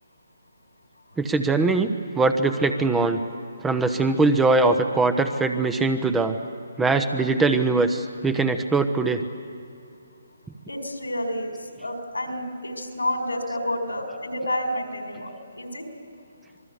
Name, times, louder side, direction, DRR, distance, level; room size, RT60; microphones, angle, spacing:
voice 1, 1.2-3.2 3.6-6.4 6.8-9.3, right 3 dB, 10° right, 8 dB, 1.0 m, -21 dB
voice 2, 10.7-11.5 11.8-15.8, left 1 dB, 90° left, 4 dB, 4.3 m, -29 dB
26.5 x 20.5 x 8.3 m, 2.5 s
figure-of-eight pair, 145°, 0 cm